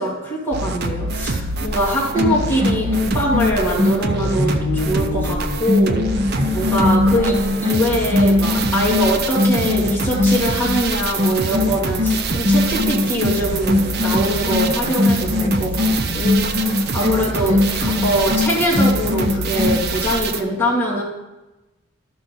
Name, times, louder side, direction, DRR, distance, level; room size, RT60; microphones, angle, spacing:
voice 1, 0.0-2.9 3.1-21.0, equal, 10° left, -9 dB, 2.6 m, -23 dB
sound 1, 0.5-20.4, right 3 dB, 50° right, 0.6 m, -25 dB
sound 2, 2.0-10.8 11.2-19.9, left 2 dB, 25° right, 1.2 m, -21 dB
13.0 x 5.9 x 4.0 m, 1.1 s
head